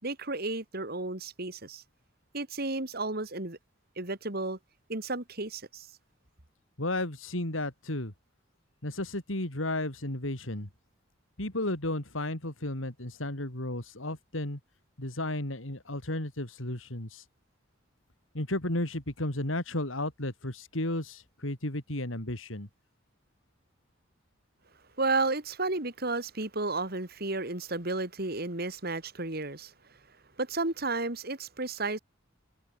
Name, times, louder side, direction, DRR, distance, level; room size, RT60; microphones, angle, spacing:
voice 1, 0.0-1.8 2.3-3.6 4.0-4.6 4.9-5.9 25.0-29.7 30.4-32.0, right 3 dB, 50° right, 3.2 m, -32 dB
voice 2, 6.8-8.1 8.8-10.7 11.4-14.6 15.0-17.2 18.3-22.7, left 1 dB, 90° left, 4.4 m, -33 dB
head